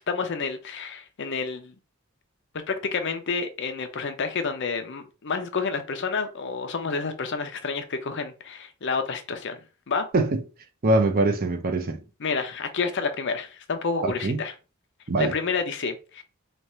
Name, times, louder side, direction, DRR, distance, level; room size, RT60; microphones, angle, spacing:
voice 1, 0.0-1.7 2.7-9.6 9.9-10.1 12.2-14.5 15.2-16.2, left 5 dB, 60° left, 0.6 m, -29 dB
voice 2, 10.8-12.0 14.0-14.4 15.1-15.3, right 2 dB, 45° right, 0.6 m, -23 dB
3.3 x 2.4 x 4.2 m
head